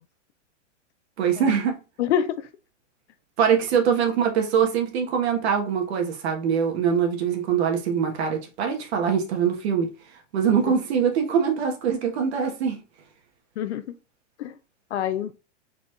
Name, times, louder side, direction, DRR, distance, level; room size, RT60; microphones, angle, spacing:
voice 1, 1.2-1.8 3.4-9.9 10.3-12.8, right 7 dB, 55° right, 1.3 m, -23 dB
voice 2, 2.0-2.5 13.6-13.9 14.4-14.5 14.9-15.3, left 10 dB, 60° left, 0.6 m, -26 dB
4.1 x 2.5 x 4.4 m
supercardioid pair, 165°, 38 cm